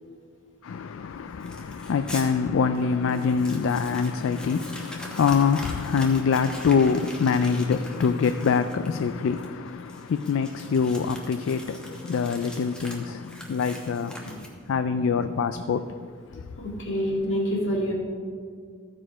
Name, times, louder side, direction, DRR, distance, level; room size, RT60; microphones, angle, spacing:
voice 1, 0.6-15.9 16.3-16.5, left 5 dB, 80° left, 0.3 m, -25 dB
Crumpling crinkling, 1.4-2.3 2.7-2.8 3.1-14.8, equal, 5° left, 1.1 m, -43 dB
voice 2, 16.6-17.9, equal, 60° left, 2.2 m, -27 dB
14.5 x 5.0 x 5.0 m
head